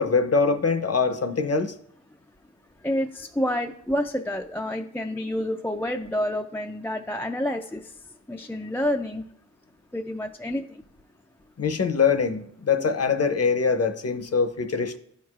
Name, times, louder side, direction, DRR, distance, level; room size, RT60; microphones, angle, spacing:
voice 1, 0.0-1.8 11.6-15.0, left 5 dB, 55° left, 0.7 m, -23 dB
voice 2, 2.8-7.9 8.3-9.2 9.9-10.8, left 1 dB, 10° left, 0.3 m, -28 dB
11.5 x 4.7 x 2.4 m
wide cardioid pair, 75°, 30 cm